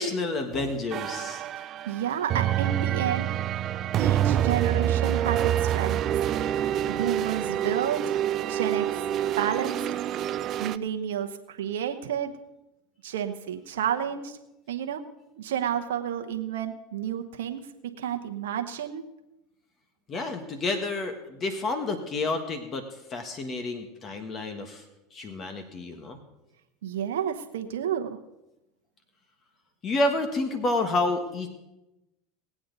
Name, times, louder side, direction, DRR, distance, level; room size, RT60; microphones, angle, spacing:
voice 1, 0.0-1.4 20.1-24.8 25.1-26.2 29.8-31.5, left 2 dB, 35° left, 6 dB, 1.6 m, -29 dB
sound 1, 0.5-10.8, right 11 dB, 45° right, 0.3 m, -27 dB
voice 2, 1.6-3.3 4.0-6.0 6.9-8.2 8.5-9.1 9.4-9.9 10.6-12.3 13.0-14.4 14.7-15.0 15.4-17.6 18.0-19.0 26.8-28.2, right 9 dB, 80° right, 4 dB, 0.9 m, -30 dB
19.0 x 8.5 x 4.0 m, 0.95 s
hypercardioid pair, 95°, 0 cm